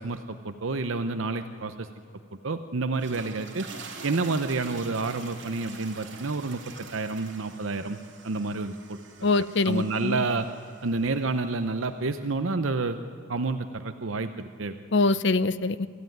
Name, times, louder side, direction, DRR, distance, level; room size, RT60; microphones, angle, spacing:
voice 1, 0.0-1.9 2.4-3.7 4.0-6.6 6.9-8.0 8.2-9.0 9.6-10.5 10.8-13.0 13.3-14.7, right 3 dB, 75° right, 9 dB, 0.8 m, -29 dB
sound 1, 2.8-11.2, right 4 dB, 60° right, 3.2 m, -45 dB
voice 2, 9.2-10.2 14.9-15.9, left 3 dB, 55° left, 15 dB, 0.7 m, -24 dB
27.0 x 13.5 x 9.3 m, 2.6 s
head